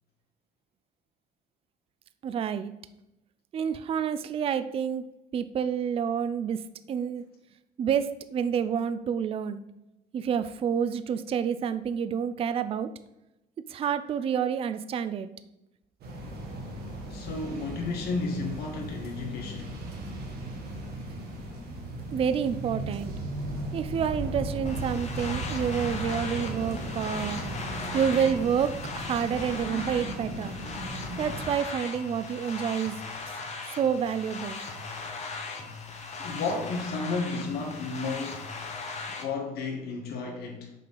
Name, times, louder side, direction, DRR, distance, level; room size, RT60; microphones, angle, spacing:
voice 1, 2.2-2.7 3.5-5.0 5.3-6.6 6.9-7.2 7.8-9.6 10.1-12.9 13.7-15.3 22.1-23.1 23.7-27.4 27.9-30.5 31.2-32.9 33.7-34.6, right 7 dB, 35° right, 12 dB, 0.4 m, -28 dB
sound 1, 16.0-31.5, right 1 dB, 70° right, 1.5 m, -36 dB
voice 2, 17.1-19.8 36.2-38.5 39.2-40.7, left 3 dB, 70° left, 1 dB, 1.2 m, -32 dB
sound 2, 24.7-39.2, left 4 dB, 40° left, 1.1 m, -38 dB
5.5 x 3.9 x 5.4 m, 0.92 s
cardioid pair, 110°, 17 cm